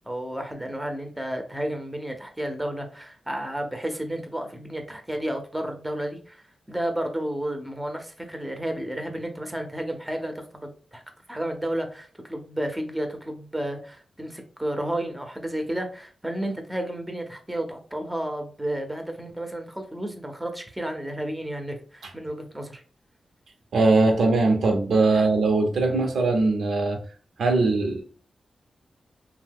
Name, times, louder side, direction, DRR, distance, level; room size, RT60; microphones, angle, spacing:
voice 1, 0.1-11.0 11.3-22.8, right 1 dB, 5° right, 5 dB, 0.6 m, -32 dB
voice 2, 23.7-27.0 27.4-28.0, right 3 dB, 85° right, 4 dB, 0.7 m, -21 dB
2.7 x 2.1 x 3.4 m, 0.40 s
cardioid pair, 85°, 0 cm